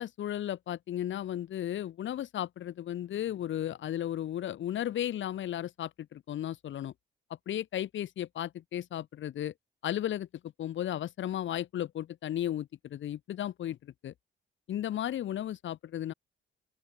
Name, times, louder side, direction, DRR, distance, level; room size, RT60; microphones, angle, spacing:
voice 1, 0.0-6.9 7.5-9.5 9.8-10.3 10.6-13.8 14.0-14.1 14.7-16.1, left 11 dB, 70° left, 5.4 m, -34 dB
open air
cardioid pair, 90°, 20 cm